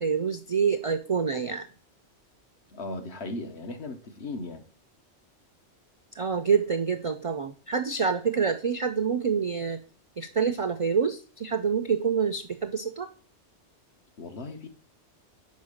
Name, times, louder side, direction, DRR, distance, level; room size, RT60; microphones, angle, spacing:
voice 1, 0.0-1.6 6.2-9.8 10.2-13.1, right 6 dB, 45° right, 0.4 m, -27 dB
voice 2, 2.7-4.6 14.2-14.7, left 2 dB, 65° left, 1.3 m, -37 dB
5.3 x 5.2 x 6.4 m
omnidirectional pair, 1.2 m